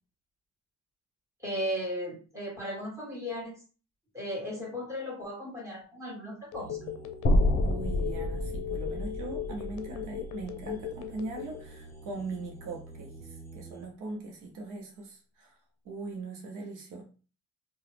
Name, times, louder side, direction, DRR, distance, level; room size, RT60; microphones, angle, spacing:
voice 1, 1.4-3.6 4.1-7.0, equal, 10° right, -3 dB, 1.6 m, -36 dB
Telephone, 6.5-11.7, left 13 dB, 80° left, 0.5 m, -38 dB
sound 1, 6.5-13.8, right 2 dB, 10° left, 1.3 m, -48 dB
sound 2, 7.2-11.4, left 1 dB, 35° left, 0.8 m, -29 dB
voice 2, 7.6-15.5 15.8-17.0, right 3 dB, 85° right, 1 dB, 0.8 m, -40 dB
2.8 x 2.3 x 3.3 m, 0.36 s
cardioid pair, 90°, 30 cm